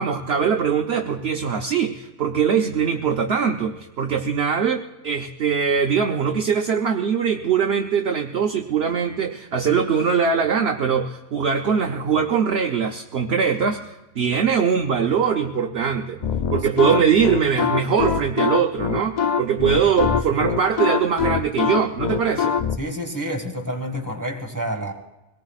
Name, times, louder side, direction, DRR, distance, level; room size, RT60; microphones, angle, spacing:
voice 1, 0.0-13.9 14.2-16.2 16.5-22.5, right 7 dB, 55° right, 3 dB, 0.9 m, -22 dB
sound 1, 16.2-22.8, left 7 dB, 55° left, 0.4 m, -23 dB
voice 2, 22.8-24.9, equal, 15° right, 2 dB, 1.6 m, -28 dB
23.5 x 18.0 x 2.4 m, 1.0 s
omnidirectional pair, 1.4 m